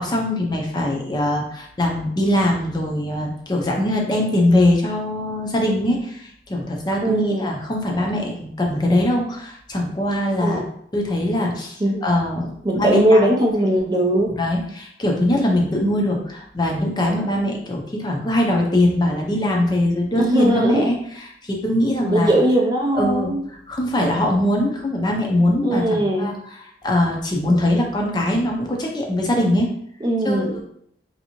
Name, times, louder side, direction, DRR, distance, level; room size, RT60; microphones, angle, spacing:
voice 1, 0.0-10.6 10.9-11.8 12.0-13.3 14.4-21.0 21.4-22.3 22.9-23.3 23.7-26.3 26.8-29.7 30.2-30.6, left 1 dB, 25° left, 0 dB, 0.5 m, -21 dB
voice 2, 7.0-7.5 10.4-10.6 11.8-12.0 12.6-14.3 20.2-20.9 22.0-23.4 25.6-26.3 30.0-30.6, right 1 dB, 25° right, 0 dB, 0.5 m, -19 dB
3.2 x 2.7 x 2.9 m, 0.67 s
head